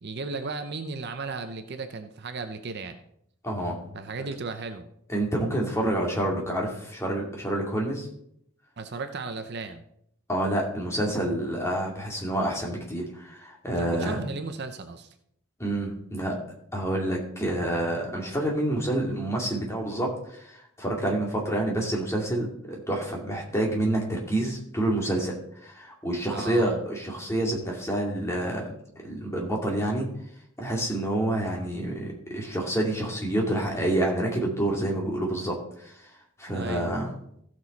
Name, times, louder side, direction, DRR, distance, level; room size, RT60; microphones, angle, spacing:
voice 1, 0.0-3.0 3.9-4.9 8.8-9.8 13.8-15.1 26.3-26.8 36.5-37.0, right 4 dB, 50° right, 8 dB, 0.7 m, -35 dB
voice 2, 3.4-3.9 5.1-8.1 10.3-14.2 15.6-16.4 16.7-28.7 29.0-30.1 30.6-35.6 35.8-35.9 36.4-37.1, right 1 dB, 15° left, -1 dB, 2.3 m, -28 dB
15.5 x 6.3 x 4.1 m, 0.71 s
head